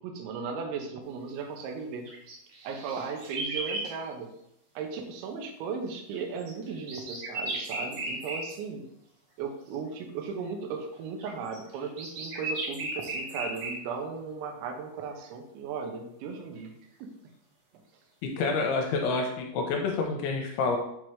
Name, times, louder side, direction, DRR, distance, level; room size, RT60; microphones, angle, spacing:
voice 1, 0.0-2.1 2.6-4.3 4.8-8.9 9.4-16.7 17.0-17.1, right 5 dB, 80° right, 3 dB, 3.1 m, -36 dB
sound 1, 2.0-3.9 6.1-8.5 9.7-9.8 11.2-13.8, right 2 dB, 65° right, 1.8 m, -35 dB
voice 2, 18.2-20.8, left 4 dB, 85° left, 2 dB, 2.9 m, -28 dB
7.7 x 3.0 x 4.7 m, 0.77 s
omnidirectional pair, 5.4 m